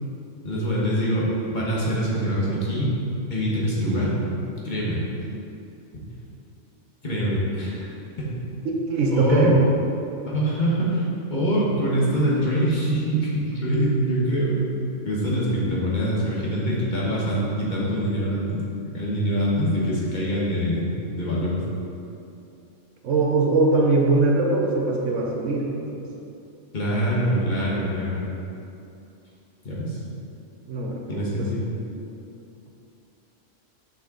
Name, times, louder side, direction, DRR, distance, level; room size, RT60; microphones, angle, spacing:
voice 1, 0.4-3.0 3.3-4.2 4.6-5.0 7.0-7.9 9.1-9.5 10.3-11.0 11.3-14.7 15.0-18.6 18.9-20.9 21.2-21.6 26.7-28.2 29.6-30.0 31.1-31.7, equal, 40° left, -6 dB, 1.4 m, -24 dB
voice 2, 8.6-9.5 23.0-26.0 30.7-31.5, right 3 dB, 80° right, -1 dB, 1.1 m, -22 dB
6.0 x 5.9 x 3.9 m, 2.7 s
omnidirectional pair, 1.3 m